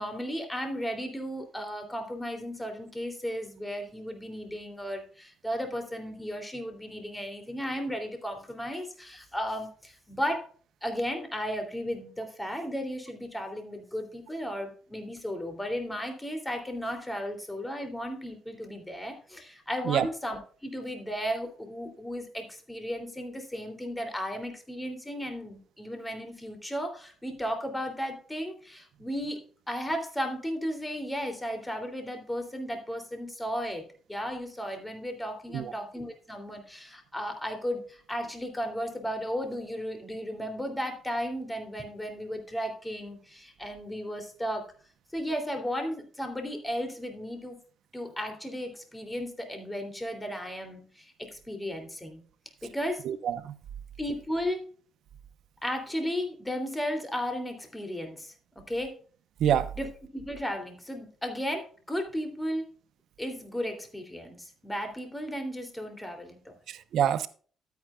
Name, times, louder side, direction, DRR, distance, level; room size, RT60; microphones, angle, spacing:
voice 1, 0.0-10.5 10.8-29.4 29.7-44.7 45.1-47.6 47.9-52.2 52.6-53.0 54.0-54.6 55.6-59.0 59.8-62.6 63.2-66.6, equal, 10° left, 3.0 m, -35 dB
voice 2, 53.0-53.5 59.4-59.7 66.7-67.3, right 9 dB, 75° right, 0.9 m, -26 dB
12.5 x 9.4 x 2.4 m
cardioid pair, 90°, 0 cm